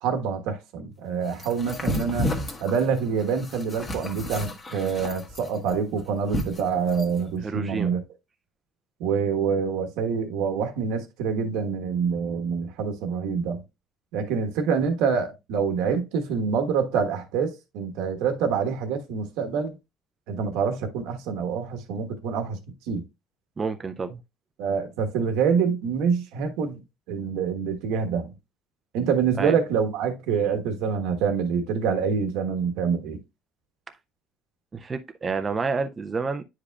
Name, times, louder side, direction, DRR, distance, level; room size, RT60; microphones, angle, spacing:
voice 1, 0.0-2.3 2.6-8.0 9.0-13.6 14.1-19.7 20.3-22.6 22.9-23.0 24.6-26.8 27.1-28.3 28.9-33.2, right 6 dB, 85° right, 1.2 m, -26 dB
sound 1, 1.4-7.2, left 1 dB, 25° left, 1.2 m, -32 dB
voice 2, 7.4-7.9 23.6-24.2 29.4-29.6 34.7-36.4, right 4 dB, 20° right, 0.4 m, -29 dB
9.9 x 4.9 x 2.3 m
cardioid pair, 155°, 0 cm